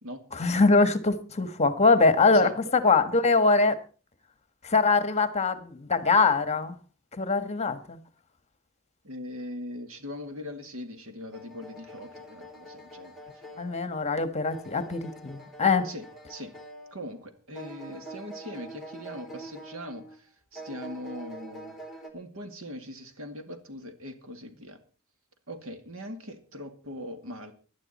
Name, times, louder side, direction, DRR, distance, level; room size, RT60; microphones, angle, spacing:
voice 1, 0.3-3.8 4.6-6.7 7.1-8.0 13.6-15.9, left 4 dB, 30° left, 12 dB, 1.4 m, -23 dB
voice 2, 9.0-13.1 15.8-16.5 16.9-21.7 22.1-24.8 25.5-27.5, left 1 dB, 70° right, 7 dB, 2.3 m, -40 dB
sound 1, 11.3-17.2 17.5-20.2 20.5-22.1, right 1 dB, ahead, 2.8 m, -45 dB
18.0 x 11.5 x 4.2 m, 0.36 s
head